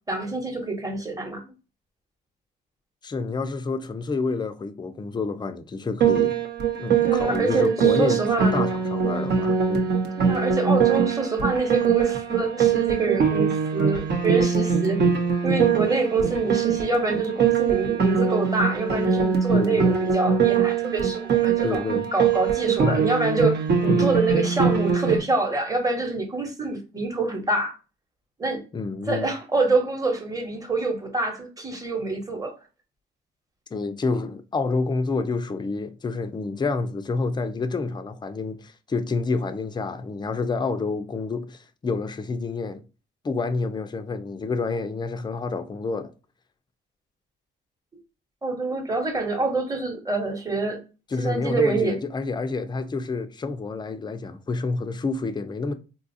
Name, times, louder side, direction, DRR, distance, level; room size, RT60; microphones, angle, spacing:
voice 1, 0.1-1.5 7.0-8.6 10.1-15.0 15.4-21.8 22.1-27.8 28.4-28.6 29.1-32.5 48.4-50.8 51.2-52.0, right 3 dB, 20° right, 1.0 m, -26 dB
voice 2, 3.0-6.4 6.8-9.9 19.5-20.0 21.6-22.0 22.8-23.0 23.9-24.1 28.7-29.3 33.7-42.8 43.2-46.1 51.1-55.7, left 4 dB, 20° left, 0.4 m, -28 dB
Piano, 6.0-25.2, right 6 dB, 60° right, 0.8 m, -22 dB
3.9 x 2.4 x 2.6 m
cardioid pair, 90°, 20 cm